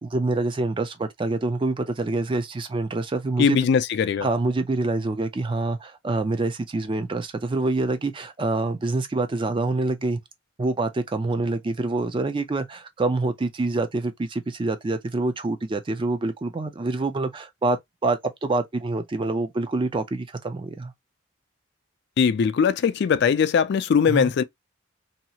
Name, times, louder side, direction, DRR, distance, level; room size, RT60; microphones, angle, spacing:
voice 1, 0.0-3.6 4.2-10.2 10.6-20.9 24.0-24.3, right 2 dB, 25° right, 0.4 m, -26 dB
voice 2, 3.4-4.3 22.2-24.4, left 6 dB, 55° left, 0.3 m, -20 dB
2.8 x 2.4 x 2.7 m
head